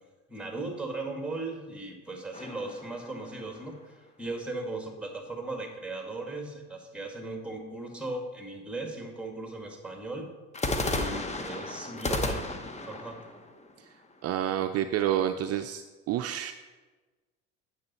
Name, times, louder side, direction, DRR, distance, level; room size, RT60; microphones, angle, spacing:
voice 1, 0.3-3.8 4.2-10.3 10.8-12.4 12.9-13.2, right 2 dB, 5° right, 2 dB, 2.0 m, -37 dB
sound 1, 2.3-3.8 10.5-14.5, left 2 dB, 20° left, 1.0 m, -34 dB
voice 2, 14.2-16.5, right 11 dB, 50° right, 8 dB, 0.5 m, -29 dB
8.8 x 6.9 x 4.2 m, 1.3 s
supercardioid pair, 70°, 32 cm